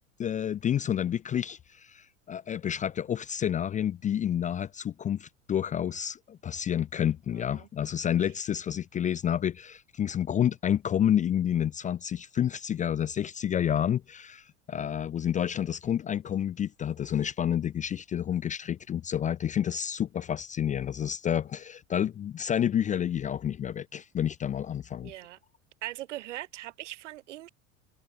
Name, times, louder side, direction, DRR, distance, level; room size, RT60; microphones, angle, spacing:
voice 1, 0.2-25.1, left 9 dB, 20° left, 0.5 m, -29 dB
voice 2, 7.3-7.7 14.7-15.0 25.0-25.4 25.8-27.5, right 15 dB, 70° right, 3.9 m, -41 dB
hypercardioid pair, 80°, 37 cm